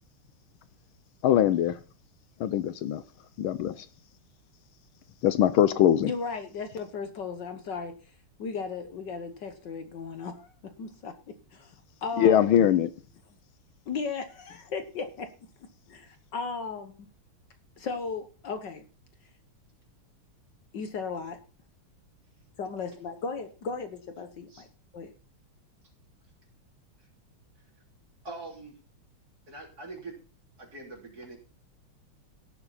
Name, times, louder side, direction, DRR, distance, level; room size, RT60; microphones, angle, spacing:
voice 1, 1.2-1.8 2.4-3.0 3.4-3.7 5.2-6.1 12.2-12.9, left 10 dB, 75° left, 14 dB, 1.5 m, -22 dB
voice 2, 6.0-8.0 8.4-11.7 12.0-12.6 13.9-15.3 15.9-16.9 17.8-18.9 20.7-21.4 22.6-24.7 24.9-25.1, left 5 dB, 60° left, 8 dB, 1.6 m, -36 dB
voice 3, 28.2-28.7 29.5-30.1 30.6-31.4, right 2 dB, 45° right, 1 dB, 3.8 m, -42 dB
17.0 x 6.9 x 4.1 m, 0.35 s
omnidirectional pair, 2.4 m